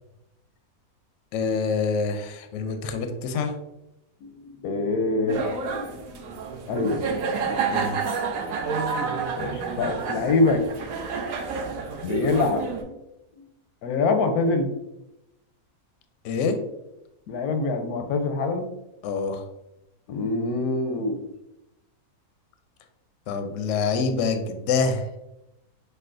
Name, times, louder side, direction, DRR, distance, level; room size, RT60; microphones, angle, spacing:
voice 1, 1.3-3.5 7.7-8.0 16.2-16.6 19.0-19.4 23.3-25.1, left 4 dB, 70° left, 6 dB, 0.8 m, -26 dB
voice 2, 4.2-6.1 6.7-7.1 9.4-10.6 10.9-11.3 11.7-13.0 13.4-13.5 13.8-14.7 17.3-18.7 20.1-21.2, left 3 dB, 90° left, 6 dB, 1.1 m, -25 dB
sound 1, 5.3-12.8, right 5 dB, 70° right, 1.0 m, -29 dB
6.4 x 2.2 x 2.5 m, 0.89 s
omnidirectional pair, 1.5 m